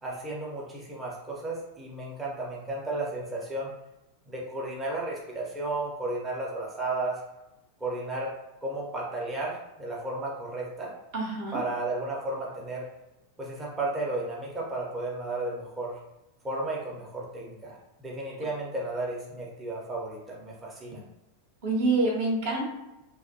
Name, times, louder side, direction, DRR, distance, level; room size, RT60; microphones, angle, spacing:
voice 1, 0.0-3.7 4.3-7.2 7.8-8.3 8.6-10.9 11.5-12.9 13.4-16.0 16.4-21.0, right 2 dB, 15° right, -4 dB, 0.6 m, -33 dB
voice 2, 11.1-11.6 21.6-22.6, right 2 dB, 50° right, -2 dB, 0.7 m, -26 dB
2.5 x 2.1 x 2.5 m, 0.94 s
figure-of-eight pair, 90°, 0 cm